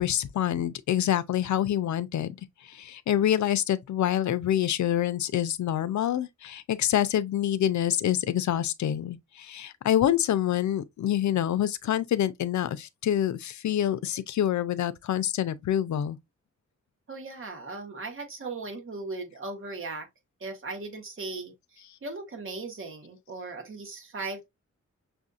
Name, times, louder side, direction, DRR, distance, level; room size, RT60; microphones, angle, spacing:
voice 1, 0.0-2.4 2.6-16.2, left 11 dB, 75° left, 0.5 m, -26 dB
voice 2, 17.1-20.1 20.4-24.5, right 3 dB, 45° right, 1.3 m, -38 dB
6.1 x 2.6 x 2.4 m
wide cardioid pair, 130°, 29 cm